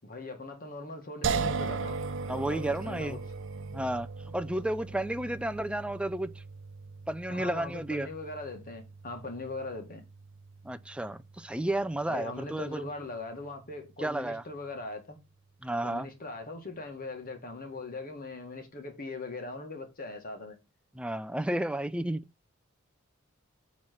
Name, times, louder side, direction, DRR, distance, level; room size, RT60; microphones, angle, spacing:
voice 1, 0.0-2.0 2.5-3.2 7.3-10.0 12.1-15.2 15.8-20.6, left 3 dB, 40° left, 1.6 m, -40 dB
sound 1, 1.2-14.3, right 4 dB, 60° right, 0.7 m, -39 dB
voice 2, 2.3-3.2 3.7-4.1 4.3-6.3 7.1-8.1 10.6-12.8 14.0-14.4 15.6-16.1 20.9-22.2, right 1 dB, 5° right, 0.4 m, -32 dB
8.6 x 3.2 x 5.8 m
head